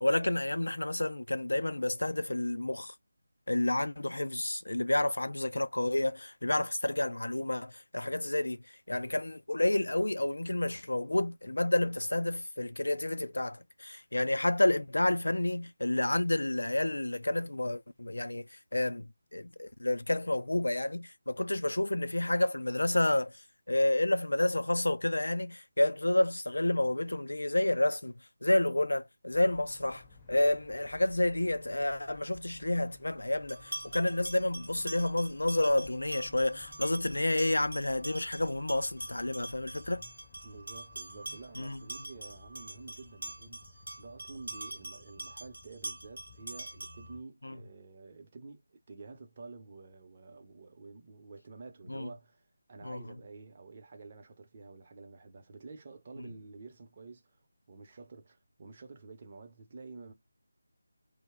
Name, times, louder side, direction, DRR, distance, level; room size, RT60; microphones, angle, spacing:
voice 1, 0.0-2.9 3.5-8.6 8.9-23.3 23.7-28.1 28.4-40.0 41.6-41.8 47.4-47.6 51.9-52.1 52.8-53.0, left 1 dB, 75° left, 0.4 m, -30 dB
sound 1, 29.3-47.2, left 4 dB, 20° left, 0.6 m, -57 dB
sound 2, 33.5-47.2, right 1 dB, 70° right, 0.6 m, -44 dB
voice 2, 40.4-52.4 52.7-57.4 57.7-60.1, right 3 dB, 35° right, 0.7 m, -49 dB
2.7 x 2.1 x 3.4 m
figure-of-eight pair, 160°, 0 cm